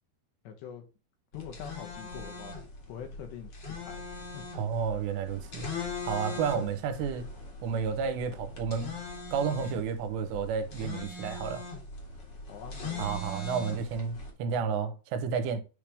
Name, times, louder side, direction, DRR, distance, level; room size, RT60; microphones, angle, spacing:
voice 1, 0.4-0.9 1.3-2.5 2.9-4.5 6.6-6.7 12.5-13.3, left 8 dB, 80° left, 3.3 m, -44 dB
sound 1, 1.3-14.3, left 3 dB, 45° left, 1.4 m, -41 dB
voice 2, 4.5-5.7 6.0-7.3 7.6-9.0 9.3-11.6 13.0-15.6, right 6 dB, 85° right, 3.0 m, -31 dB
8.9 x 3.5 x 4.9 m
omnidirectional pair, 5.0 m